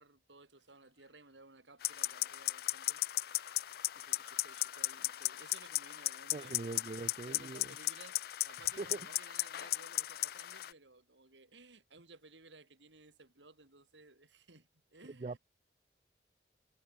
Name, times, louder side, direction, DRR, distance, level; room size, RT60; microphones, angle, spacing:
voice 1, 0.0-3.0 3.9-6.9 7.2-15.4, right 3 dB, 85° right, 4.8 m, -58 dB
sound 1, 0.6-1.4 1.8-1.9 2.3-7.2, left 5 dB, 70° left, 3.7 m, -62 dB
sound 2, 1.8-10.7, left 17 dB, 55° left, 0.3 m, -37 dB
voice 2, 6.3-7.7 8.8-9.0 15.2-15.4, right 3 dB, 35° right, 0.4 m, -41 dB
head